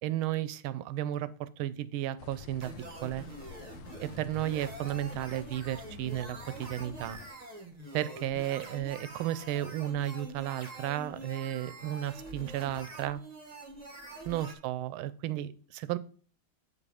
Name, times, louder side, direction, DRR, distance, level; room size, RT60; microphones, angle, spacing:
voice 1, 0.0-2.7 3.0-3.3 4.0-7.2 7.9-13.2 14.2-16.0, right 13 dB, 85° right, 16 dB, 1.4 m, -33 dB
sound 1, 2.2-7.3, left 8 dB, 75° left, 1.2 m, -50 dB
sound 2, 2.6-14.5, right 2 dB, 40° right, 0.5 m, -46 dB
7.5 x 5.0 x 4.8 m, 0.43 s
omnidirectional pair, 2.2 m